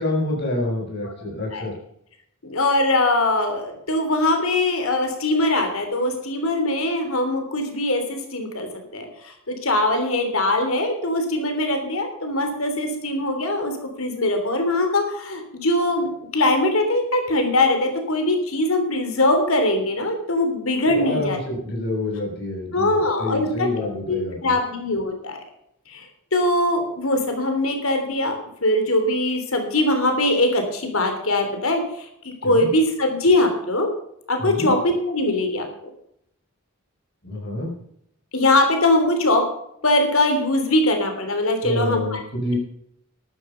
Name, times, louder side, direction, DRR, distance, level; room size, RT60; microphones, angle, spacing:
voice 1, 0.0-1.7 20.8-24.6 32.4-32.7 34.4-34.7 37.2-37.7 41.6-42.6, left 2 dB, 55° left, -1 dB, 7.1 m, -27 dB
voice 2, 2.4-21.4 22.7-24.2 24.4-25.4 25.9-26.1 26.3-33.9 34.3-35.7 38.3-39.4 39.8-42.2, left 1 dB, 85° left, 5 dB, 3.4 m, -22 dB
13.5 x 11.5 x 5.8 m, 0.73 s
head